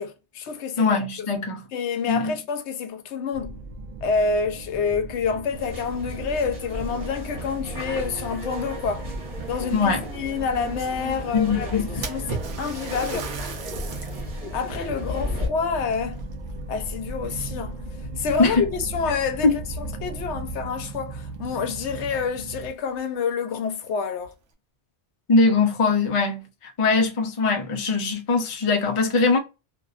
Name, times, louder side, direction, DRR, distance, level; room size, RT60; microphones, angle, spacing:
voice 1, 0.0-1.0 1.7-3.6 4.0-9.0 9.5-11.8 12.1-13.3 14.5-16.2 16.7-17.8 18.2-19.5 20.0-24.3, left 5 dB, 80° left, 0.9 m, -28 dB
voice 2, 0.8-1.6 2.1-2.4 9.7-10.1 11.3-12.1 18.4-18.6 19.4-19.6 25.3-29.4, left 4 dB, 40° left, 0.5 m, -21 dB
sound 1, 3.3-22.7, right 2 dB, 60° right, 0.6 m, -37 dB
sound 2, 5.5-15.5, left 1 dB, 40° right, 1.2 m, -35 dB
Splash splatter, 12.0-14.3 14.8-14.9 15.8-16.9 17.2-17.7 18.5-18.6 19.1-19.2 21.3-21.4 21.8-21.9 22.4-22.5 22.9-23.0 23.8-24.3, right 5 dB, 85° right, 0.9 m, -37 dB
2.5 x 2.2 x 2.3 m
omnidirectional pair, 1.2 m